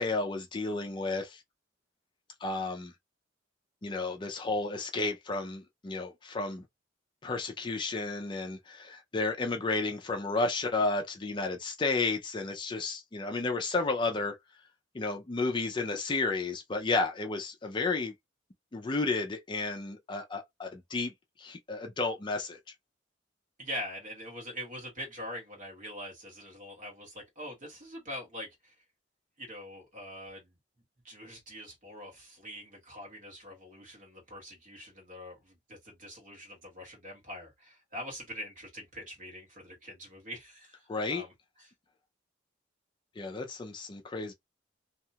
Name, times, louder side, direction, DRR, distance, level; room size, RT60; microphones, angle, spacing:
voice 1, 0.0-1.4 2.4-2.9 3.8-6.6 7.2-14.4 14.9-18.1 18.7-21.1 21.4-22.6 40.9-41.2 43.2-44.3, left 3 dB, 25° left, 0.4 m, -32 dB
voice 2, 23.6-28.7 29.4-30.5 31.0-41.3 41.6-41.7, equal, 45° right, 1.4 m, -43 dB
2.8 x 2.3 x 2.7 m
head